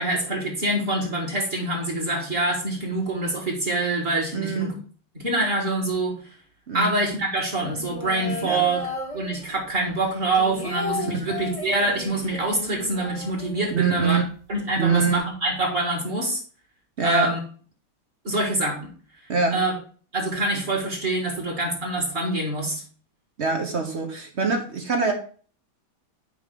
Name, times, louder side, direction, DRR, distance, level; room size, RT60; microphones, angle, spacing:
voice 1, 0.0-4.7 5.2-6.2 6.7-8.8 9.1-14.2 14.5-16.4 17.0-17.4 18.2-18.9 19.5-19.7 20.1-22.8, right 2 dB, 30° right, 1 dB, 2.0 m, -25 dB
voice 2, 4.3-4.7 6.7-6.9 8.4-8.6 11.4-11.6 13.7-14.2 14.8-15.2 17.0-17.3 19.3-19.6 23.4-25.1, right 5 dB, 50° right, 4 dB, 0.9 m, -24 dB
sound 1, 7.6-9.7 10.1-14.0 14.3-14.4 14.7-15.2, left 2 dB, 20° left, 1.2 m, -34 dB
7.3 x 5.2 x 3.6 m, 0.42 s
omnidirectional pair, 2.1 m